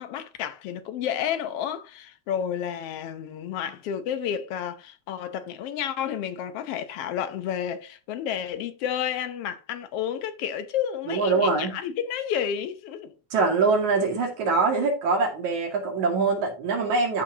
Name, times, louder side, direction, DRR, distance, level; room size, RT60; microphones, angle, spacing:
voice 1, 0.0-13.1, left 9 dB, 65° left, 1.6 m, -31 dB
voice 2, 11.1-11.8 13.3-17.2, right 4 dB, 75° right, 3.6 m, -23 dB
13.5 x 5.8 x 2.9 m
omnidirectional pair, 3.4 m